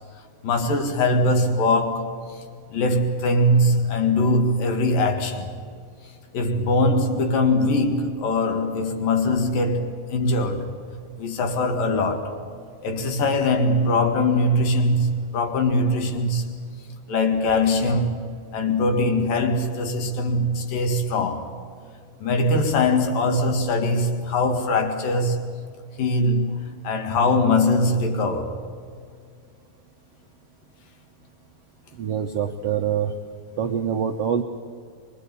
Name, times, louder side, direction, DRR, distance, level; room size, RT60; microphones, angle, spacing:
voice 1, 0.4-2.2 2.7-5.5 6.3-10.7 11.2-12.4 12.8-16.5 17.1-21.5 22.2-25.6 26.0-28.6, left 2 dB, 65° left, 3.6 m, -22 dB
voice 2, 32.0-33.1 33.6-34.4, right 8 dB, 80° right, 1.4 m, -25 dB
23.5 x 23.5 x 8.4 m
omnidirectional pair, 4.4 m